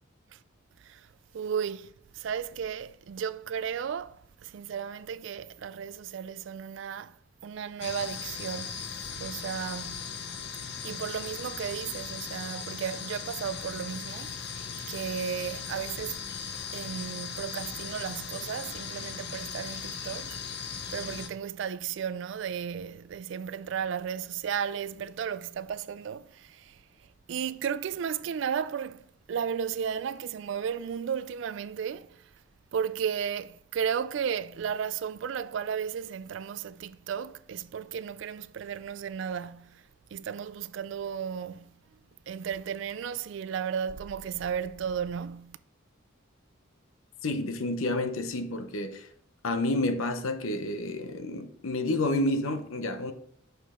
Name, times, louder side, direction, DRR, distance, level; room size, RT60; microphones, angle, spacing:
voice 1, 1.3-7.2 7.4-10.1 10.6-14.6 14.9-16.2 16.7-26.8 27.3-32.3 32.7-39.8 40.1-41.8 42.3-45.6, right 7 dB, 65° right, 0.3 m, -34 dB
sound 1, 7.8-21.3, left 6 dB, 50° left, 0.7 m, -38 dB
voice 2, 47.2-49.1 49.4-53.1, left 2 dB, 85° left, 0.8 m, -29 dB
6.4 x 5.5 x 3.7 m
head